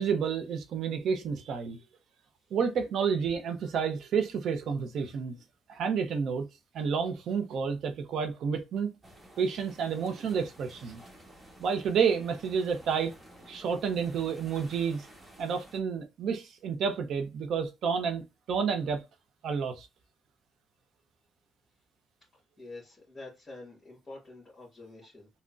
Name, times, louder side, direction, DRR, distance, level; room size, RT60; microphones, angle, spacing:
voice 1, 0.0-1.8 2.5-5.3 5.7-6.4 6.7-8.9 9.4-11.0 11.6-13.1 13.5-15.1 15.4-19.0 19.4-19.9, right 6 dB, 70° right, 0.5 m, -30 dB
sound 1, 9.0-15.8, right 1 dB, 25° right, 1.1 m, -53 dB
voice 2, 22.6-25.3, left 2 dB, 25° left, 1.5 m, -47 dB
3.7 x 2.1 x 2.4 m
cardioid pair, 90°, 0 cm